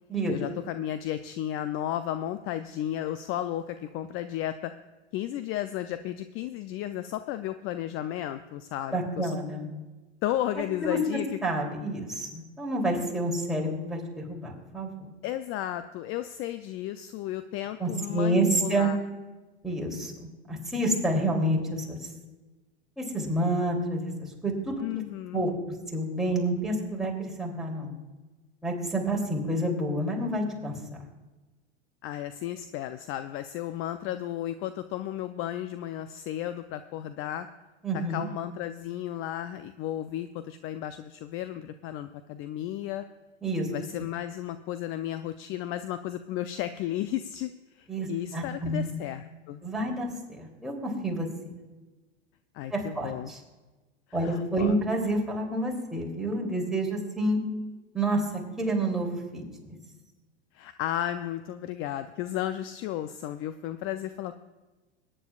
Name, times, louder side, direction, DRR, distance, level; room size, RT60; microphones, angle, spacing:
voice 1, 0.3-4.7 5.1-9.4 10.2-11.3 15.2-19.0 24.8-25.5 32.0-37.5 38.1-43.0 43.7-49.6 52.5-53.3 54.1-54.7 60.5-64.4, left 12 dB, 40° left, 11 dB, 0.5 m, -34 dB
voice 2, 8.9-9.7 10.8-11.0 11.4-14.9 17.8-18.9 19.6-22.0 23.0-24.1 24.4-24.8 25.3-25.5 25.9-27.9 28.6-30.7 37.8-38.3 43.4-43.7 44.0-44.1 47.9-48.9 49.6-51.3 52.7-53.4 54.1-57.4 57.9-59.8, right 1 dB, ahead, -3 dB, 3.1 m, -29 dB
21.5 x 9.9 x 2.4 m, 1.2 s
hypercardioid pair, 90°, 34 cm